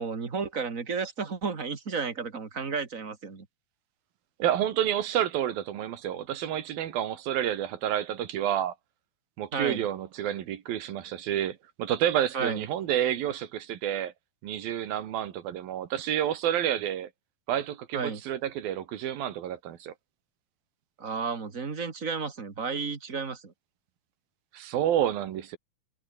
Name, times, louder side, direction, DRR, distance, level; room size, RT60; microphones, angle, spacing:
voice 1, 0.0-3.5 9.5-9.9 12.3-12.6 17.9-18.2 21.0-23.5, right 5 dB, 25° right, 2.0 m, -32 dB
voice 2, 4.4-8.7 9.4-14.1 14.4-17.1 17.5-19.9 24.5-25.6, right 11 dB, 75° right, 3.4 m, -29 dB
omnidirectional pair, 4.3 m